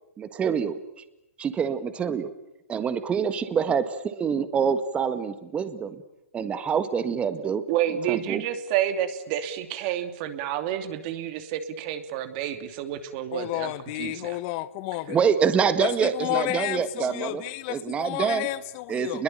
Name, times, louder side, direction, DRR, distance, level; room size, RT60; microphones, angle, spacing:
voice 1, 0.2-0.8 1.4-2.3 2.7-5.9 6.3-7.6 8.1-8.4 15.1-17.4 17.7-18.5 18.9-19.2, right 6 dB, 15° right, 1.6 m, -26 dB
voice 2, 7.4-13.7 14.0-14.4 17.0-17.1, right 11 dB, 40° right, 2.7 m, -29 dB
voice 3, 13.3-15.2 15.8-19.2, left 16 dB, 35° left, 0.9 m, -31 dB
29.5 x 22.0 x 9.1 m
hypercardioid pair, 140°, 7 cm